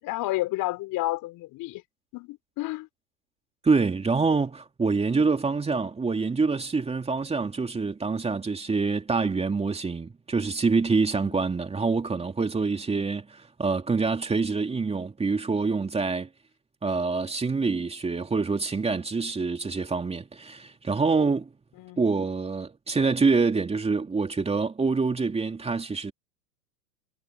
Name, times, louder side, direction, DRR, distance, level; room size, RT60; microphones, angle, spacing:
voice 1, 0.0-1.8 2.1-2.9 11.2-11.4 21.8-22.0, left 18 dB, 40° left, 4.2 m, -31 dB
voice 2, 3.6-16.3 16.8-21.5 22.0-26.1, right 4 dB, 10° right, 2.9 m, -26 dB
hypercardioid pair, 105°, 49 cm